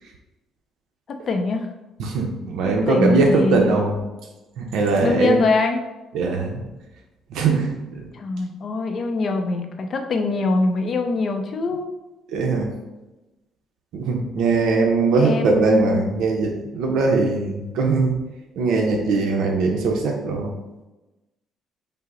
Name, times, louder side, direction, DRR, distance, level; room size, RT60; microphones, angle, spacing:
voice 1, 1.1-1.7 2.6-3.8 5.0-5.8 8.1-11.9 15.2-16.1, left 3 dB, 40° left, 5 dB, 0.4 m, -23 dB
voice 2, 2.0-4.0 4.6-5.4 6.1-6.6 7.3-8.0 12.3-12.7 13.9-18.2 18.6-20.5, right 4 dB, 80° right, 1 dB, 0.6 m, -21 dB
5.5 x 2.0 x 3.8 m, 1.1 s
cardioid pair, 130°, 0 cm